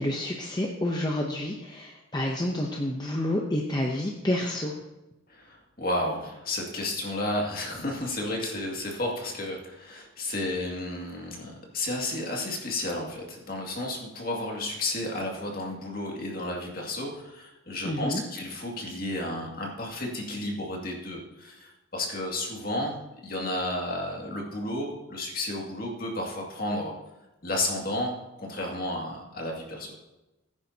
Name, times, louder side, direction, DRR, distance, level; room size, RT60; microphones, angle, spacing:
voice 1, 0.0-4.8 17.8-18.2, left 1 dB, 20° left, 0 dB, 0.7 m, -29 dB
voice 2, 5.3-23.0 23.2-26.9 27.4-29.9, left 1 dB, 45° left, -1 dB, 2.2 m, -32 dB
15.5 x 9.7 x 2.8 m, 0.99 s
head